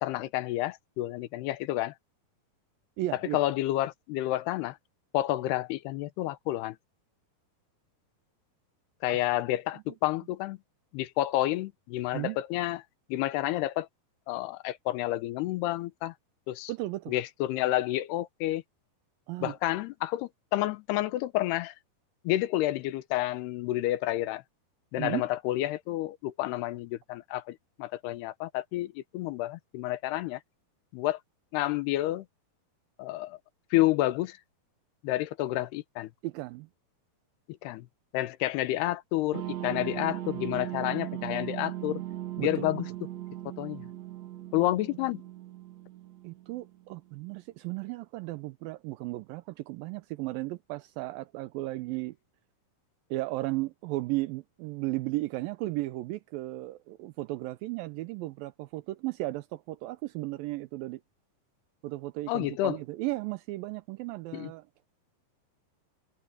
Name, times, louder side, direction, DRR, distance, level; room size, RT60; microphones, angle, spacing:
voice 1, 0.0-1.9 3.3-4.8 5.1-6.8 9.0-10.6 10.9-12.8 13.1-13.9 14.3-16.1 16.5-16.7 17.1-18.6 19.4-21.7 22.2-24.4 24.9-30.4 30.9-31.2 31.5-32.3 33.0-33.4 33.7-34.4 35.0-36.1 37.5-37.9 38.1-42.0 42.4-42.9 43.6-43.8 44.5-45.2 62.3-62.8 64.3-64.5, left 15 dB, 85° left, 2.9 m, -30 dB
voice 2, 3.0-3.4 9.1-9.2 9.9-10.0 12.1-12.4 16.7-17.1 19.3-19.5 25.0-25.3 36.2-36.7 42.4-42.8 46.2-52.2 53.1-61.0 61.8-64.7, right 19 dB, 85° right, 2.2 m, -35 dB
sound 1, 39.3-46.8, right 14 dB, 60° right, 1.9 m, -38 dB
omnidirectional pair, 4.6 m